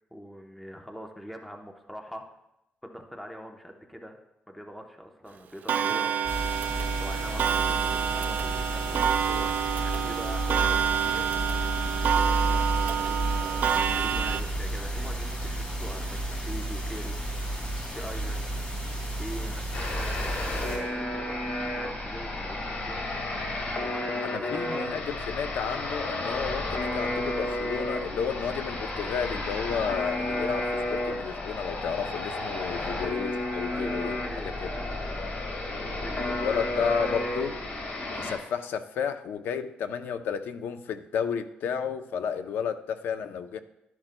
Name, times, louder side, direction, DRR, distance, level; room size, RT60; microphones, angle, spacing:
voice 1, 0.1-2.2 2.8-4.2 4.5-6.1 7.0-11.3 11.6-17.2 17.9-18.6 19.2-23.4 23.8-25.1 32.7-33.3 33.7-35.3 36.0-36.7 37.0-37.3, equal, 5° left, 3 dB, 0.8 m, -43 dB
Clock, 5.7-14.4, right 8 dB, 55° right, 0.3 m, -28 dB
sound 1, 6.2-20.8, right 1 dB, 30° left, 2.4 m, -32 dB
sound 2, 19.7-38.4, left 2 dB, 50° left, 1.7 m, -32 dB
voice 2, 24.2-34.7 36.4-37.6 38.1-43.6, left 7 dB, 85° left, 10 dB, 0.6 m, -32 dB
12.0 x 10.5 x 2.2 m, 0.87 s
cardioid pair, 135°, 3 cm